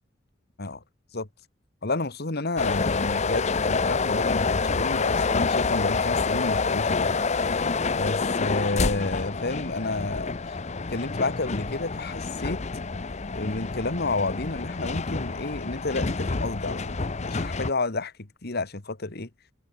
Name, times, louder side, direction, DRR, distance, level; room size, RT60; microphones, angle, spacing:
voice 1, 1.8-7.2 7.9-10.6 10.9-12.6 13.3-19.3, left 2 dB, 55° left, 1.8 m, -30 dB
sound 1, 2.6-17.7, left 4 dB, 35° left, 0.8 m, -27 dB
head